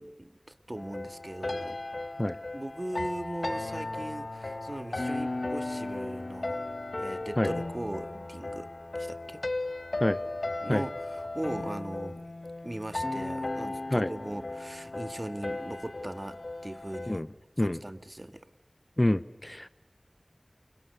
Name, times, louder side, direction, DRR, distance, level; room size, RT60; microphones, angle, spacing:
voice 1, 0.0-1.8 2.5-6.6 7.0-9.4 10.6-12.2 12.6-17.2 17.6-18.5, right 1 dB, 30° right, 10 dB, 2.0 m, -39 dB
sound 1, 0.8-17.2, left 2 dB, 70° left, 1.2 m, -36 dB
voice 2, 19.0-19.7, left 1 dB, 30° left, 15 dB, 1.0 m, -26 dB
30.0 x 28.5 x 6.8 m, 0.90 s
wide cardioid pair, 45°, 0 cm